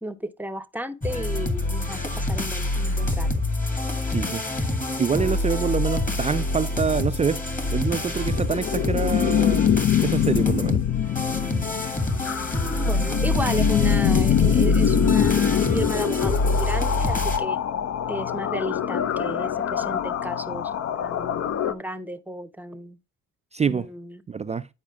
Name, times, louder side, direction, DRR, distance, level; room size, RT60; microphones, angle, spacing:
voice 1, 0.0-3.3 12.7-17.6 18.1-20.7 21.0-23.0 23.6-24.2, right 1 dB, 5° right, 0.7 m, -33 dB
sound 1, 1.0-17.4, left 2 dB, 25° left, 2.0 m, -26 dB
voice 2, 4.1-4.4 5.0-7.4 7.7-9.8 10.0-10.8 23.5-23.9 24.3-24.7, right 6 dB, 25° right, 0.3 m, -26 dB
sound 2, 8.3-21.7, left 9 dB, 55° left, 0.6 m, -24 dB
9.9 x 4.9 x 3.5 m
cardioid pair, 90°, 30 cm